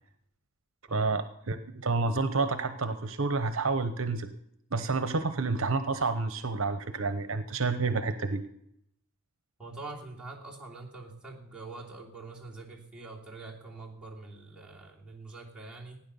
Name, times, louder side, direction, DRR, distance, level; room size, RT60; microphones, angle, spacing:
voice 1, 0.9-4.3 4.7-8.4, right 3 dB, 65° right, 11 dB, 0.9 m, -29 dB
voice 2, 9.6-16.0, right 3 dB, 5° right, -5 dB, 3.0 m, -44 dB
16.5 x 9.8 x 7.0 m, 0.75 s
head